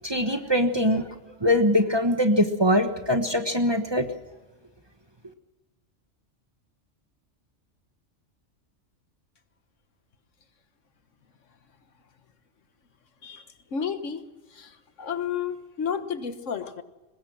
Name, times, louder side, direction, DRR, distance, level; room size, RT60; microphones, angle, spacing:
voice 1, 0.0-1.1 1.4-4.1, left 1 dB, 20° right, 6 dB, 1.2 m, -22 dB
voice 2, 13.7-14.2 14.5-16.8, left 7 dB, 85° left, 10 dB, 1.6 m, -31 dB
22.5 x 20.0 x 6.2 m, 1.2 s
omnidirectional pair, 1.2 m